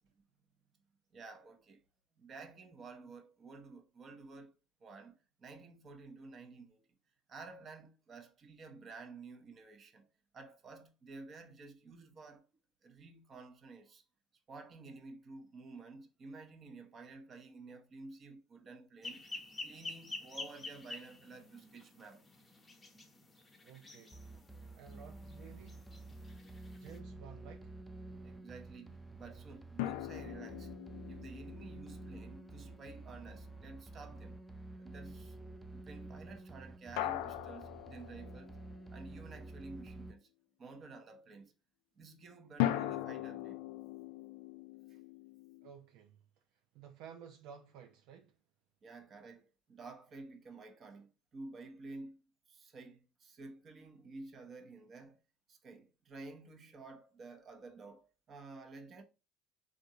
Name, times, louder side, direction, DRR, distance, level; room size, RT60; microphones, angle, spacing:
voice 1, 1.1-1.8 2.1-4.5 4.8-6.9 7.3-10.1 10.3-12.5 12.8-14.0 14.5-19.2 19.6-22.2 28.2-30.7 31.1-34.4 34.8-35.4 35.7-38.6 38.9-40.3 40.6-41.5 42.0-43.6 44.9-45.0 48.8-55.2 55.5-59.0, right 3 dB, 40° right, 0.7 m, -52 dB
sound 1, 19.0-27.0, left 2 dB, 20° left, 0.8 m, -49 dB
voice 2, 23.6-24.2 24.8-25.8 26.5-27.8 45.6-46.2 46.5-48.4, right 8 dB, 65° right, 0.4 m, -54 dB
sound 2, 24.1-40.1, right 2 dB, 5° right, 0.4 m, -50 dB
sound 3, 29.8-33.1 37.0-39.0 42.6-45.7, left 13 dB, 70° left, 0.3 m, -40 dB
3.5 x 2.5 x 2.7 m
hypercardioid pair, 70°, 0 cm